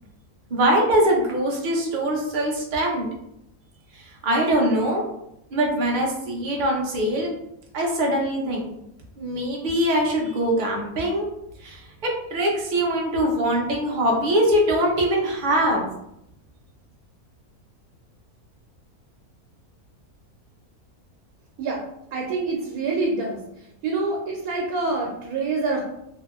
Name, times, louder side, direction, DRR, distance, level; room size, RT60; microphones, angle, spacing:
voice 1, 0.5-3.1 3.9-5.0 5.5-7.4 7.7-8.7 9.2-11.3 11.6-15.9, right 1 dB, 55° right, -1 dB, 0.5 m, -22 dB
voice 2, 22.1-23.4 23.8-25.8, right 3 dB, 75° right, -1 dB, 1.0 m, -26 dB
2.9 x 2.6 x 2.3 m, 0.80 s
omnidirectional pair, 1.6 m